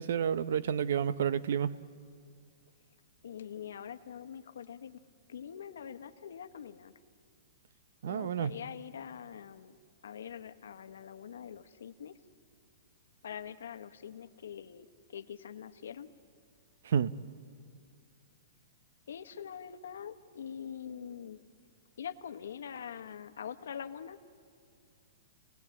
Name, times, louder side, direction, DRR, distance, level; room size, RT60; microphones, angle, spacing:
voice 1, 0.0-1.8 8.0-8.5 16.8-17.1, right 8 dB, 65° right, 16 dB, 0.7 m, -30 dB
voice 2, 3.2-5.0 5.3-6.9 8.1-9.7 10.0-12.2 13.2-16.1 19.1-21.4 22.0-24.2, left 8 dB, 85° left, 10 dB, 1.2 m, -44 dB
27.5 x 19.0 x 8.5 m, 2.2 s
hypercardioid pair, 165°, 0 cm